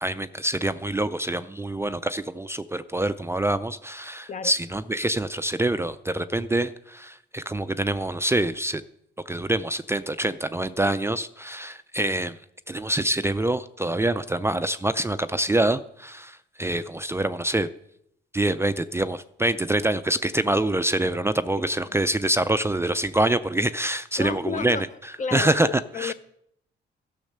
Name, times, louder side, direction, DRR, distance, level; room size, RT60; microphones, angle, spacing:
voice 1, 0.0-8.8 9.3-12.4 12.7-17.7 18.3-24.8 25.3-25.7 26.0-26.1, right 1 dB, 15° right, 0.4 m, -25 dB
voice 2, 24.2-26.1, left 6 dB, 40° left, 0.7 m, -32 dB
12.0 x 6.4 x 6.6 m
cardioid pair, 90°, 20 cm